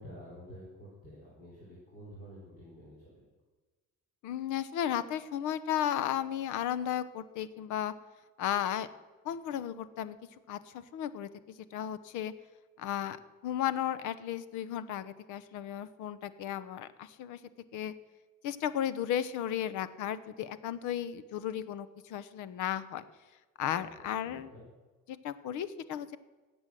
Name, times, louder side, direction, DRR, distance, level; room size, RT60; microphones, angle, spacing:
voice 1, 0.0-3.3 23.7-24.6, equal, 30° left, -6 dB, 4.7 m, -50 dB
voice 2, 4.2-7.9 8.4-8.9 9.2-10.2 10.5-11.3 11.7-12.3 12.8-13.2 13.4-17.4 17.7-17.9 18.4-23.0 23.6-24.5 25.1-26.2, left 10 dB, 75° left, 15 dB, 0.8 m, -34 dB
18.0 x 8.2 x 7.6 m, 1.3 s
cardioid pair, 170°, 30 cm